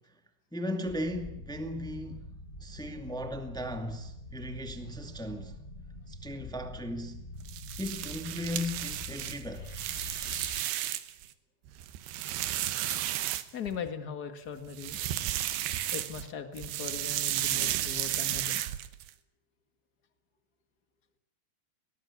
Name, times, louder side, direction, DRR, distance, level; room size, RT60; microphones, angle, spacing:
voice 1, 0.5-2.3 2.6-5.6 6.1-7.3 7.8-9.7, left 1 dB, 5° left, 0.4 m, -37 dB
sound 1, 0.8-10.6, left 2 dB, 20° left, 2.0 m, -45 dB
sound 2, 7.4-11.2 11.7-13.9 14.7-16.3 16.6-19.1, right 13 dB, 75° right, 3.1 m, -33 dB
voice 2, 13.5-15.0 15.9-18.6, left 7 dB, 45° left, 1.2 m, -39 dB
22.5 x 19.5 x 8.6 m
omnidirectional pair, 4.9 m